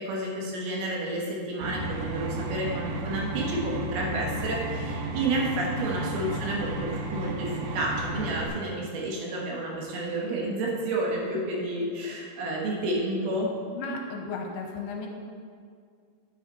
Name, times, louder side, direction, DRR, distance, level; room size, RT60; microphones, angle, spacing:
voice 1, 0.0-13.5, right 1 dB, 70° right, -2 dB, 3.2 m, -30 dB
sound 1, 1.6-8.5, right 2 dB, 90° right, 3.4 m, -33 dB
voice 2, 13.7-15.1, left 3 dB, 80° left, 1 dB, 2.6 m, -34 dB
10.0 x 9.0 x 4.2 m, 2.2 s
omnidirectional pair, 4.9 m